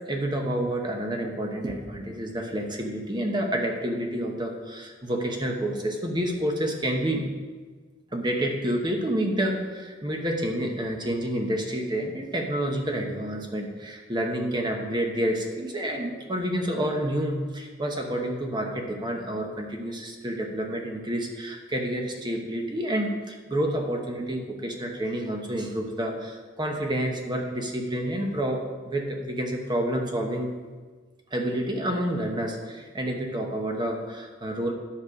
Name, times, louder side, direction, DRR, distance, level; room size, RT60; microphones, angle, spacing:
voice 1, 0.1-7.2 8.1-30.5 31.3-34.7, right 1 dB, 20° right, 2 dB, 1.0 m, -29 dB
10.5 x 6.8 x 4.9 m, 1.4 s
head